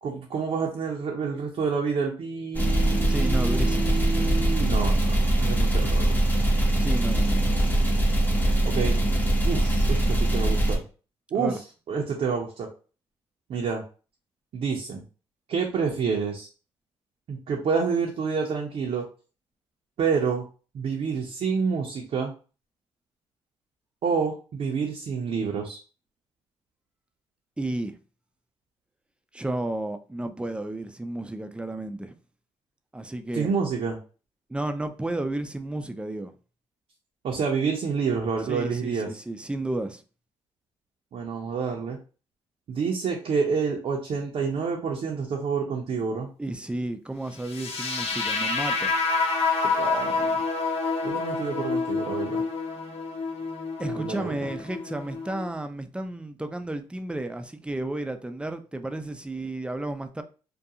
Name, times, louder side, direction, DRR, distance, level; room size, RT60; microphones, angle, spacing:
voice 1, 0.0-6.2 8.6-9.0 9.4-10.8 11.3-11.6 11.9-12.7 13.5-13.8 14.5-15.0 15.5-16.5 17.3-19.1 20.0-20.5 20.7-22.3 24.0-25.8 33.3-34.0 37.2-39.1 41.1-42.0 42.7-46.3 49.8-50.4 51.0-52.4 53.9-54.5, right 5 dB, 60° right, 0.6 m, -28 dB
sound 1, 2.5-10.8, right 1 dB, 15° left, 0.7 m, -22 dB
voice 2, 3.1-4.0 6.8-7.6 11.4-11.6 27.6-27.9 29.3-32.1 32.9-33.5 34.5-36.3 38.5-40.0 46.4-48.9 53.8-60.2, right 1 dB, 10° right, 0.4 m, -32 dB
sound 2, 47.4-55.5, left 4 dB, 60° left, 0.6 m, -28 dB
2.4 x 2.2 x 2.7 m
supercardioid pair, 70°, 12 cm